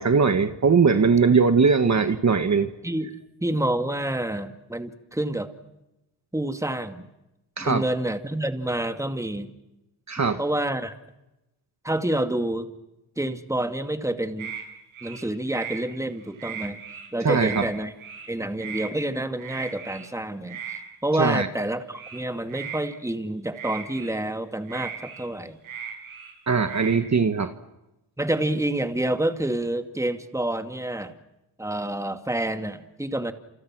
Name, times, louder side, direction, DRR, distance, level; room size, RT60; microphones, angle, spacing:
voice 1, 0.0-2.7 7.6-7.8 10.1-10.4 17.2-17.6 21.2-21.5 26.5-27.5, right 5 dB, 35° right, 1.6 m, -20 dB
voice 2, 2.8-5.5 6.3-7.1 7.6-9.5 10.4-11.0 11.8-12.7 13.2-14.5 15.0-16.8 17.1-17.9 18.3-20.6 21.0-25.6 28.2-31.1 31.6-33.3, right 1 dB, 5° right, 2.2 m, -28 dB
sound 1, 14.4-14.6 14.9-15.8 16.2-17.1 17.4-17.7 18.0-18.3 18.6-18.9 19.4-20.1 20.5-20.8 21.9-22.8 23.5-24.2 24.7-26.3 26.6-27.0, right 7 dB, 80° right, 7.9 m, -37 dB
29.5 x 28.0 x 6.2 m
cardioid pair, 75°, 48 cm